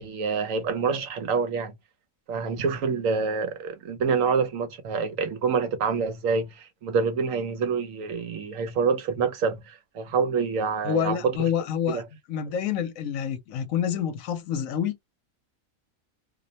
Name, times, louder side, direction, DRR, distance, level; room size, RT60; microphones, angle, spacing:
voice 1, 0.0-1.7 2.3-11.3 11.9-12.0, right 5 dB, 75° right, 1.0 m, -26 dB
voice 2, 10.8-12.0 12.3-15.0, left 9 dB, 80° left, 1.0 m, -27 dB
2.6 x 2.1 x 2.7 m
omnidirectional pair, 1.4 m